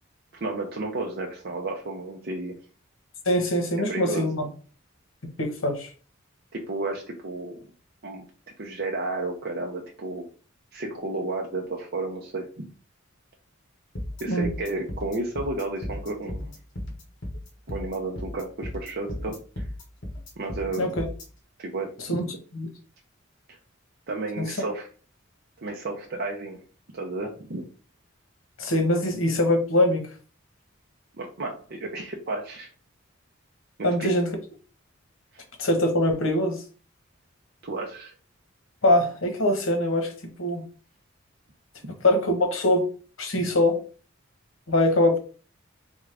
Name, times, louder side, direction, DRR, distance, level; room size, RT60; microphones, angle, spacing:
voice 1, 0.3-2.6 3.9-4.3 6.5-7.6 8.0-8.2 8.6-10.3 10.7-12.7 14.2-16.5 17.7-19.7 20.4-21.0 21.6-22.4 23.5-23.6 24.1-24.9 25.6-26.6 26.9-27.7 31.2-32.7 33.8-34.1 35.3-35.4 37.6-38.1 41.8-41.9 43.3-43.4, right 2 dB, 55° right, 0 dB, 0.7 m, -32 dB
voice 2, 3.2-4.5 5.4-5.9 14.3-14.5 20.8-21.0 22.1-22.2 22.5-22.7 24.4-24.5 28.6-30.0 33.8-34.3 35.6-36.6 38.8-40.1 40.4-40.6 42.0-42.9 43.2-43.8 44.7-45.2, left 1 dB, 85° left, 6 dB, 1.1 m, -23 dB
sound 1, 13.9-21.2, left 1 dB, 60° left, 1.4 m, -35 dB
3.6 x 3.5 x 3.4 m, 0.38 s
head